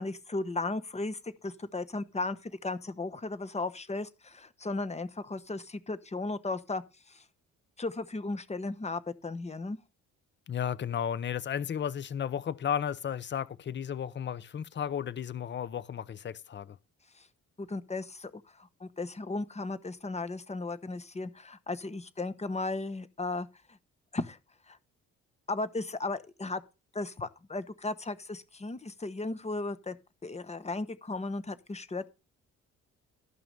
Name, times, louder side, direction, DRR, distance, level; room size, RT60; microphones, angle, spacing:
voice 1, 0.0-7.2 7.8-9.8 17.1-17.3 17.6-23.8 24.1-24.4 24.7-24.8 25.5-26.6 26.9-30.0 30.2-32.1, left 2 dB, 20° left, 1.0 m, -36 dB
voice 2, 10.5-16.8, left 8 dB, 40° left, 0.7 m, -34 dB
12.5 x 5.8 x 5.4 m
cardioid pair, 90°, 30 cm